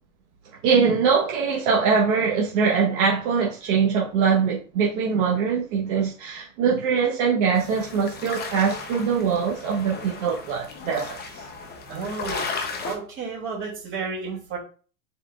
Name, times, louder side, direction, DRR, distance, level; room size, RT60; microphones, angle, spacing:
voice 1, 0.6-11.4, right 6 dB, 55° right, 1.3 m, -22 dB
sound 1, 7.6-13.0, left 4 dB, 20° left, 0.8 m, -35 dB
voice 2, 11.9-12.5 12.8-14.6, right 5 dB, 25° right, 2.3 m, -32 dB
4.5 x 3.9 x 2.4 m
hypercardioid pair, 115°, 44 cm